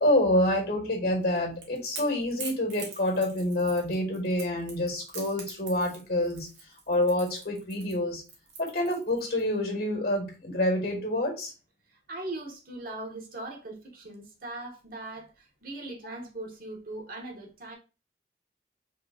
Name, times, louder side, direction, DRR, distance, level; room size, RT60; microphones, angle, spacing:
voice 1, 0.0-6.5 6.9-8.2 8.6-11.5, left 1 dB, 60° left, 1.8 m, -27 dB
Crackle / Crack, 1.2-9.4, right 5 dB, 75° right, 1.4 m, -44 dB
voice 2, 12.1-17.8, right 2 dB, 55° right, 1.2 m, -40 dB
4.4 x 3.0 x 2.8 m
head